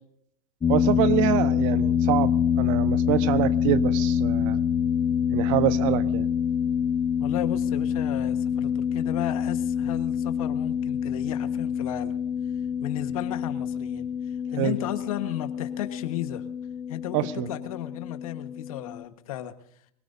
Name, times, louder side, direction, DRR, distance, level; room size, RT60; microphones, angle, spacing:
sound 1, 0.6-19.0, left 8 dB, 20° left, 0.9 m, -26 dB
voice 1, 0.7-4.6 5.3-6.3 14.6-14.8 17.1-17.5, right 14 dB, 65° right, 11 dB, 1.2 m, -26 dB
voice 2, 7.2-12.1 12.8-16.4 16.9-19.5, left 14 dB, 75° left, 9 dB, 1.4 m, -34 dB
24.0 x 17.5 x 2.7 m, 0.67 s
hypercardioid pair, 105°, 18 cm